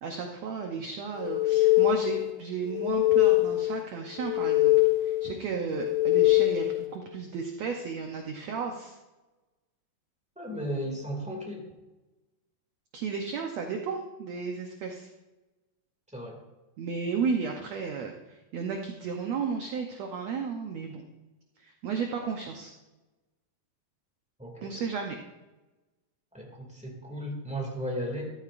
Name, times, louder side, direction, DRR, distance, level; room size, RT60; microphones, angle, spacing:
voice 1, 0.0-4.7 5.0-9.0 12.9-15.1 16.8-21.0 21.6-22.7 24.6-25.2, right 5 dB, 75° right, 2 dB, 1.6 m, -33 dB
sound 1, 1.2-2.3 2.7-3.8 4.2-5.3 5.8-6.9, left 19 dB, 80° left, 1.6 m, -23 dB
voice 2, 10.3-11.6 16.1-16.4 24.4-24.7 26.3-28.3, equal, 5° right, -1 dB, 1.4 m, -35 dB
14.0 x 13.0 x 2.6 m, 1.1 s
omnidirectional pair, 4.1 m